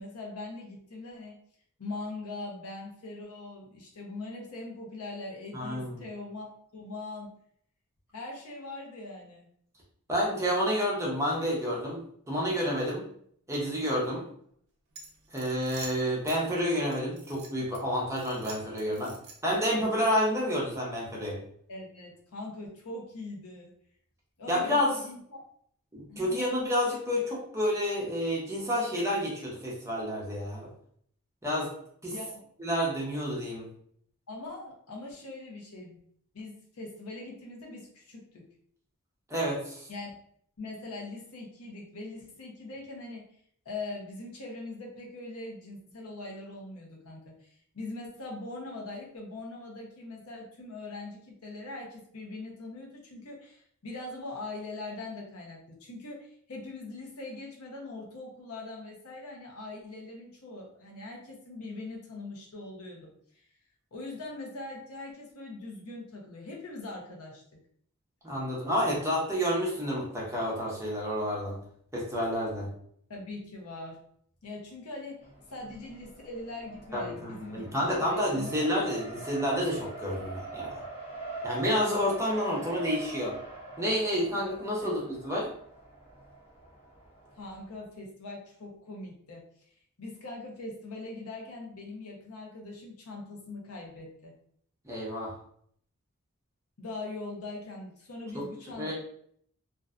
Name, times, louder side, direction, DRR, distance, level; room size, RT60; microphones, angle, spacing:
voice 1, 0.0-1.4 1.8-7.3 8.1-9.5 18.9-19.2 21.7-23.7 24.4-25.4 26.1-26.4 32.1-32.4 34.3-36.0 36.3-38.4 39.9-40.1 40.6-43.3 43.6-63.5 63.9-67.4 73.1-74.0 74.4-78.5 84.8-84.9 87.3-89.4 90.0-94.3 96.8-98.9, left 2 dB, 80° left, -1 dB, 0.7 m, -42 dB
voice 2, 5.5-6.0 10.1-13.0 13.5-14.2 15.3-19.1 19.4-21.4 24.5-24.9 25.9-30.7 31.4-31.7 32.0-32.1 32.6-33.7 39.3-39.9 68.2-71.5 71.9-72.7 76.9-80.8 81.4-83.3 83.8-85.5 94.8-95.3 98.3-98.4 98.8-98.9, equal, 15° right, -4 dB, 0.7 m, -29 dB
sound 1, 14.9-16.4 16.9-17.8 18.1-19.6, right 3 dB, 75° right, 0.7 m, -46 dB
Race car auto racing, 75.2-87.8, right 3 dB, 30° left, 0.8 m, -43 dB
2.6 x 2.2 x 2.4 m, 0.64 s
head